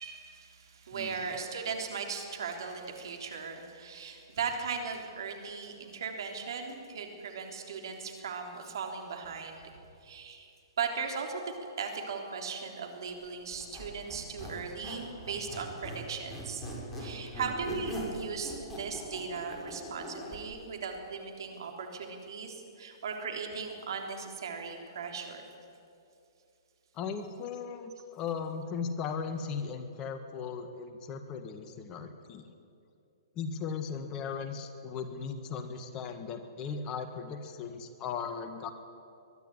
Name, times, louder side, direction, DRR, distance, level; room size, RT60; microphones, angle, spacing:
voice 1, 0.0-9.7 10.0-16.6 17.0-25.5, right 5 dB, 65° right, 3 dB, 3.5 m, -38 dB
Squeak, 13.5-16.0 16.3-20.4, equal, 15° left, 6.5 m, -41 dB
voice 2, 26.9-32.5 33.3-38.7, left 6 dB, 30° left, 8 dB, 1.7 m, -37 dB
22.0 x 12.0 x 9.8 m, 2.5 s
hypercardioid pair, 120°, 2 cm